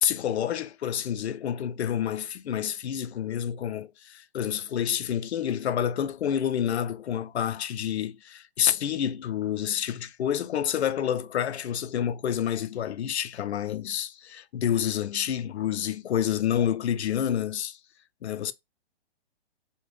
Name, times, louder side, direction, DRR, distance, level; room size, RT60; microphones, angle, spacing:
voice 1, 0.0-17.8 18.2-18.5, left 9 dB, 80° left, 0.6 m, -28 dB
4.2 x 2.2 x 3.2 m
hypercardioid pair, 170°, 33 cm